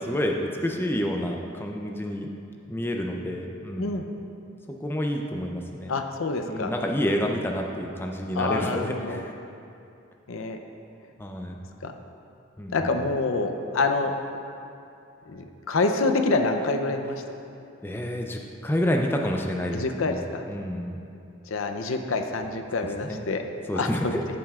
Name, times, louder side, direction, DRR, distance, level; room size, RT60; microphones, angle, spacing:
voice 1, 0.0-2.3 2.7-4.0 4.7-5.9 6.5-9.3 11.2-11.6 12.6-13.0 17.8-20.2 20.5-21.0 23.0-23.2 23.7-24.2, equal, 10° left, 1 dB, 0.4 m, -29 dB
voice 2, 5.9-6.7 8.4-9.2 10.3-10.6 11.8-11.9 12.7-14.1 15.3-17.2 19.7-20.4 21.5-23.4 23.7-24.2, left 3 dB, 85° left, 6 dB, 0.6 m, -26 dB
13.5 x 7.3 x 2.4 m, 2.7 s
head